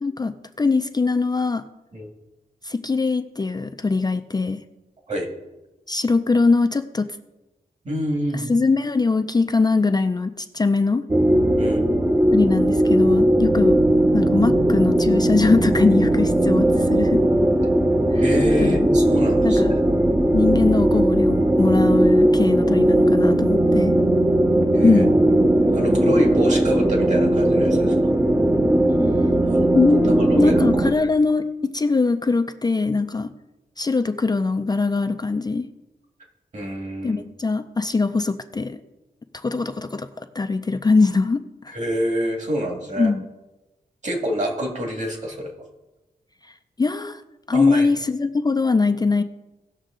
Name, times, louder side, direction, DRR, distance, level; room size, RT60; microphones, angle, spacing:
voice 1, 0.0-1.6 2.6-4.6 5.9-7.1 8.3-11.1 12.3-17.2 18.1-18.2 18.6-18.9 19.4-19.7 20.3-24.0 24.8-25.1 29.7-31.5 31.7-33.3 33.8-35.6 37.0-38.8 39.4-41.8 43.0-43.3 46.8-47.2 47.5-49.2, left 3 dB, 25° left, 7 dB, 0.4 m, -21 dB
voice 2, 7.8-8.6 11.6-11.8 18.1-19.8 24.7-25.3 25.7-28.1 29.4-29.8 30.2-30.6 36.5-37.2 41.7-43.1 44.0-45.6 47.5-47.9, equal, 45° right, 1 dB, 2.0 m, -27 dB
sound 1, 11.1-30.9, right 1 dB, 15° right, 0.7 m, -18 dB
17.5 x 6.4 x 3.8 m, 1.0 s
wide cardioid pair, 140°, 16 cm